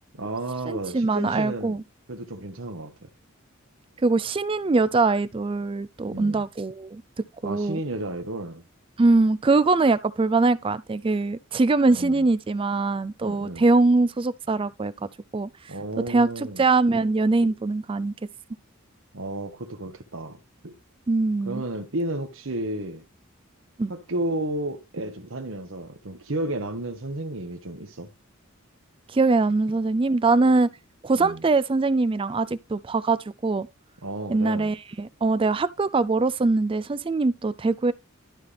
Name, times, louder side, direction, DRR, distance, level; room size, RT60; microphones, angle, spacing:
voice 1, 0.1-1.8 2.1-3.1 6.1-6.4 7.4-8.6 11.9-12.3 13.2-13.6 15.7-16.6 17.4-17.5 19.1-20.8 21.5-23.0 23.9-28.1 31.1-31.4 34.0-34.7, right 1 dB, 65° right, 1.2 m, -32 dB
voice 2, 0.7-1.8 4.0-7.0 7.4-7.8 9.0-15.5 16.1-18.1 21.1-21.6 23.8-23.9 29.1-30.7 31.0-33.7 34.3-37.9, right 3 dB, 25° right, 0.4 m, -22 dB
12.0 x 5.6 x 3.4 m
head